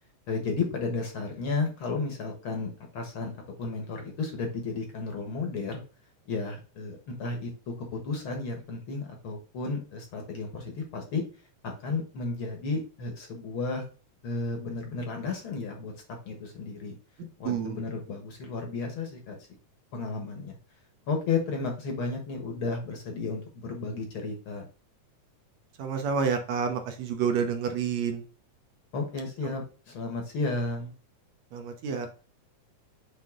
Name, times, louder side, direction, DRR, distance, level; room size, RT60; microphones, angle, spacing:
voice 1, 0.3-3.3 3.6-5.8 6.3-11.2 11.6-13.8 14.2-16.9 17.4-19.4 19.9-20.5 21.1-24.7 28.9-30.9, left 4 dB, 55° left, 3 dB, 1.6 m, -33 dB
voice 2, 17.4-17.8 25.8-28.2 31.5-32.1, right 6 dB, 65° right, 5 dB, 2.0 m, -29 dB
7.5 x 3.7 x 3.6 m, 0.36 s
omnidirectional pair, 3.6 m